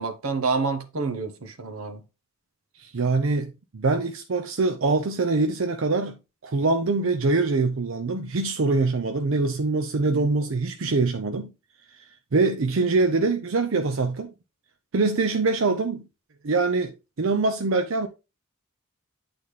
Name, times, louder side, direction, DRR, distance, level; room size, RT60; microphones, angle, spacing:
voice 1, 0.0-2.0, right 4 dB, 85° right, 1.0 m, -28 dB
voice 2, 2.8-6.2 6.4-11.5 12.3-14.3 14.9-16.0 16.4-18.1, right 3 dB, 65° right, 0.6 m, -24 dB
8.5 x 4.1 x 3.2 m
head